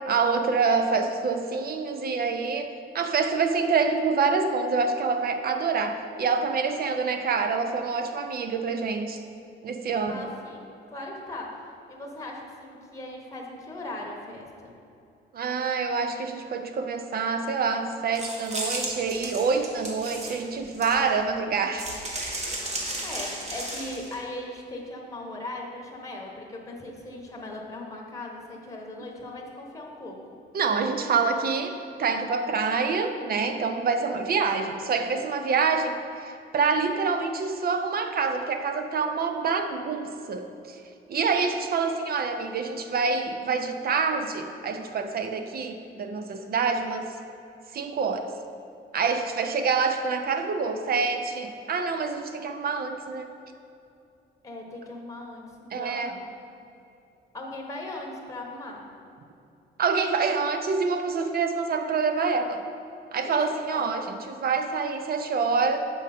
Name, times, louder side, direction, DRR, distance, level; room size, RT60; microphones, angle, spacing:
voice 1, 0.1-9.2 9.6-10.3 15.3-21.9 22.2-22.6 30.5-40.8 41.1-47.2 47.7-48.3 48.9-53.3 55.7-56.1 59.8-62.6 63.1-65.8, right 5 dB, 50° right, 7 dB, 0.5 m, -26 dB
voice 2, 10.1-14.8 22.6-30.2 54.4-56.2 57.3-58.9 63.3-63.4 63.7-63.9, left 1 dB, 15° left, 0 dB, 1.0 m, -39 dB
sound 1, 18.1-21.2 21.8-24.1, right 1 dB, 35° right, 1.3 m, -34 dB
6.2 x 5.1 x 4.2 m, 2.7 s
cardioid pair, 90°, 20 cm